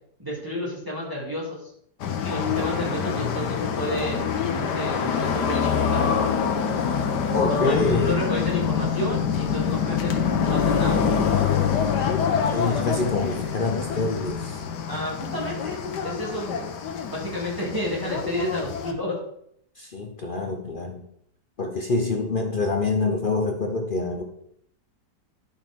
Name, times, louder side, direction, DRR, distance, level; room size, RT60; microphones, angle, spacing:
voice 1, 0.2-1.7 2.2-6.1 7.5-11.0 14.9-16.7 17.1-19.2, left 1 dB, 10° right, -5 dB, 2.7 m, -31 dB
sound 1, 2.0-18.9, left 7 dB, 85° left, 1.5 m, -25 dB
voice 2, 7.3-8.2 12.3-14.6 19.8-21.0 21.6-24.2, left 3 dB, 45° left, 3 dB, 0.7 m, -26 dB
10.5 x 5.7 x 3.7 m, 0.69 s
omnidirectional pair, 1.8 m